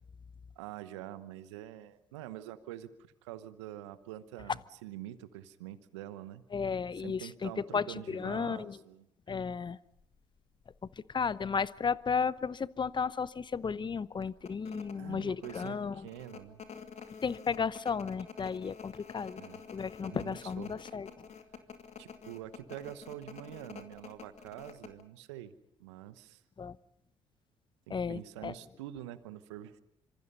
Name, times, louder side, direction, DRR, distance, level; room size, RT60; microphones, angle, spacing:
voice 1, 0.6-6.4 7.0-9.4 15.0-16.6 19.3-19.6 20.0-20.7 22.0-25.5 25.8-26.4 27.9-29.8, right 13 dB, 80° right, 14 dB, 1.1 m, -46 dB
voice 2, 6.5-8.8 9.3-9.8 11.1-16.1 17.2-19.4 19.7-21.3 26.6-26.8 27.9-28.5, left 6 dB, 30° left, 18 dB, 0.9 m, -34 dB
sound 1, 10.0-10.2 10.7-10.8 11.1-12.0 12.4-12.5 12.9-13.1 13.5-13.6 14.2-25.0, left 6 dB, 50° left, 2.4 m, -48 dB
26.0 x 26.0 x 5.5 m, 0.78 s
hypercardioid pair, 50°, 15 cm